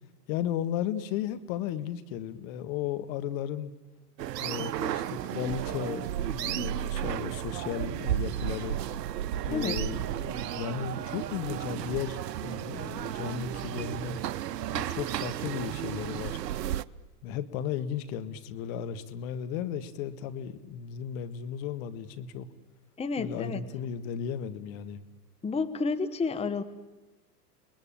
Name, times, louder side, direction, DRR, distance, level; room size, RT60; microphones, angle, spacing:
voice 1, 0.3-3.7 4.4-8.8 9.5-14.2 14.7-16.4 17.2-22.5 23.2-25.0, left 9 dB, 55° left, 11 dB, 1.7 m, -35 dB
sound 1, 4.2-16.8, right 12 dB, 80° right, 0.8 m, -33 dB
voice 2, 23.0-23.6 25.4-26.6, left 4 dB, 10° left, 12 dB, 1.1 m, -30 dB
30.0 x 20.5 x 8.9 m, 1.2 s
hypercardioid pair, 95°, 49 cm